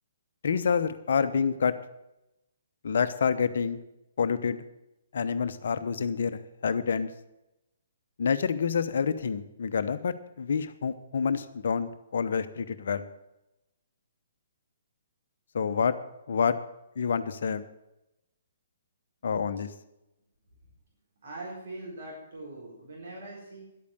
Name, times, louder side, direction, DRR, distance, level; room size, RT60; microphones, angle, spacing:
voice 1, 0.4-1.7 2.8-3.8 4.2-4.6 5.1-7.1 8.2-13.1 15.5-15.9 16.3-16.6 17.0-17.6 19.2-19.7, left 6 dB, 60° left, 12 dB, 0.9 m, -28 dB
voice 2, 21.2-23.8, right 2 dB, 55° right, -3 dB, 4.2 m, -42 dB
11.5 x 8.6 x 7.8 m, 0.90 s
figure-of-eight pair, 125°, 0 cm